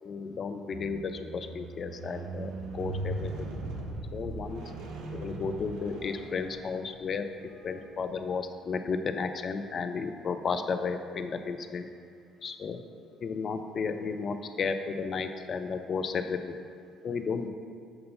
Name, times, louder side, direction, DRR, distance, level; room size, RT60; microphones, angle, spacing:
voice 1, 0.0-3.5 4.1-4.6 5.1-7.2 7.6-11.9 12.4-12.8 13.2-16.4 17.0-17.5, left 5 dB, 50° left, 8 dB, 0.4 m, -33 dB
Squeak, 0.7-7.1 7.8-8.0, right 2 dB, 70° right, 0.6 m, -39 dB
6.8 x 2.6 x 5.5 m, 2.2 s
hypercardioid pair, 50°, 0 cm